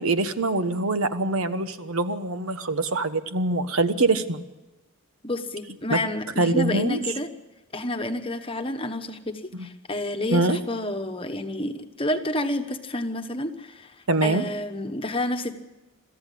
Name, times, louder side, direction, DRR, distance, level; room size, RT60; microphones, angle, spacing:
voice 1, 0.0-4.4 5.9-6.0 6.4-7.1 9.5-9.7 10.3-10.6 14.1-14.4, right 2 dB, 75° right, 10 dB, 1.2 m, -24 dB
voice 2, 5.2-7.3 7.7-13.9 14.2-15.5, left 1 dB, 25° left, 6 dB, 1.2 m, -29 dB
23.5 x 14.0 x 8.6 m, 1.1 s
head